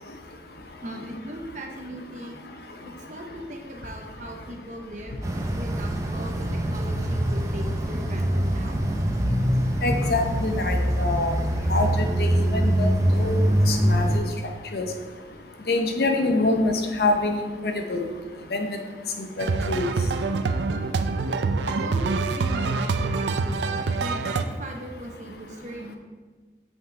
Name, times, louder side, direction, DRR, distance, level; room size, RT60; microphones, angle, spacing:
voice 1, 0.8-2.5 2.9-8.8 16.4-16.6 21.6-23.7 24.0-26.0, right 1 dB, 45° right, 2 dB, 0.8 m, -38 dB
sound 1, 5.2-14.2, equal, 15° right, 0.5 m, -24 dB
voice 2, 9.8-11.3 11.7-14.2 14.7-14.9 15.7-18.0 18.5-18.8 19.2-19.9, left 2 dB, 65° left, 4 dB, 0.8 m, -26 dB
sound 2, 19.4-24.4, right 4 dB, 85° right, 0.4 m, -25 dB
7.6 x 5.5 x 3.3 m, 1.4 s
head